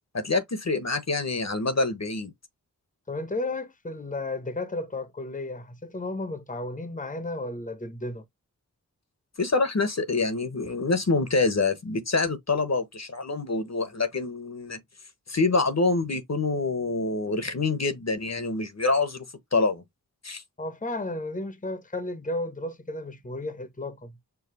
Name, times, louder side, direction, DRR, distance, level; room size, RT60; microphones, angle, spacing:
voice 1, 0.1-2.3 9.4-14.8 15.3-19.8 20.2-20.4, left 3 dB, 50° left, 1.1 m, -26 dB
voice 2, 3.1-8.2 20.6-24.1, left 2 dB, 25° left, 0.9 m, -33 dB
4.8 x 2.3 x 4.8 m
cardioid pair, 45°, 35 cm